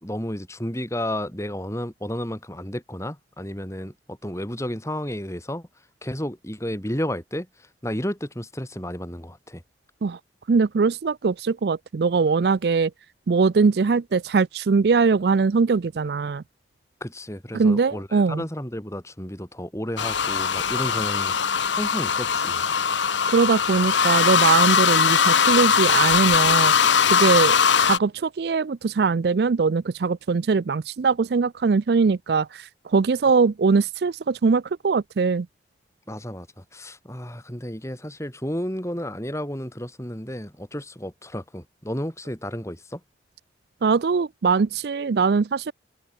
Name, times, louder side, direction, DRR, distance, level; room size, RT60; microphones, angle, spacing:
voice 1, 0.0-5.7 6.0-7.5 7.8-9.6 17.0-21.3 21.7-22.7 36.1-43.0, equal, 15° left, 5.4 m, -32 dB
voice 2, 10.5-12.9 13.3-16.4 17.5-18.4 23.3-26.7 27.1-27.6 27.8-35.5 43.8-45.7, right 4 dB, 60° right, 0.4 m, -21 dB
sound 1, 20.0-28.0, left 6 dB, 90° left, 1.2 m, -20 dB
head